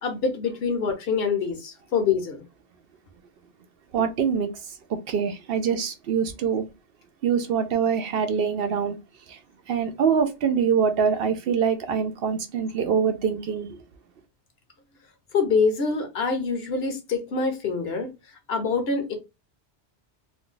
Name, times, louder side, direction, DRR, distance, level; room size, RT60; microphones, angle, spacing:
voice 1, 0.0-2.4 15.3-18.1 18.5-19.1, left 5 dB, 65° left, 1.0 m, -25 dB
voice 2, 3.9-4.5 4.9-6.6 7.2-9.0 9.3-9.4 9.7-13.8, right 6 dB, 65° right, 0.7 m, -24 dB
2.6 x 2.3 x 3.7 m
omnidirectional pair, 1.1 m